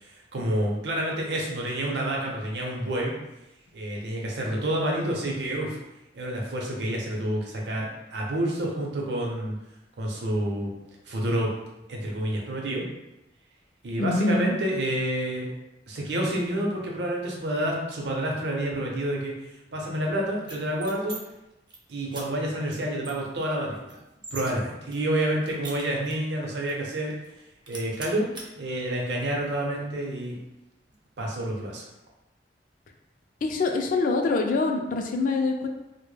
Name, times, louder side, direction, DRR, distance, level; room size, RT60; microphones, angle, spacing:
voice 1, 0.3-3.1 3.7-5.8 6.1-9.6 10.0-10.7 11.1-11.6 11.9-12.9 13.8-15.5 15.9-19.3 19.7-21.1 21.9-24.0 24.3-27.2 27.7-28.3 28.5-30.4 31.2-31.8, right 1 dB, 70° right, -2 dB, 0.6 m, -28 dB
voice 2, 14.0-14.6 33.4-35.7, left 3 dB, 50° left, 3 dB, 0.3 m, -25 dB
sound 1, 20.4-21.2 21.5-21.8 22.1-22.2 22.7-22.8 23.0-24.5 24.9-26.3 26.7-26.8 27.1-27.4 27.7-28.5, right 2 dB, 25° right, 0.4 m, -41 dB
2.1 x 2.1 x 3.1 m, 0.94 s
head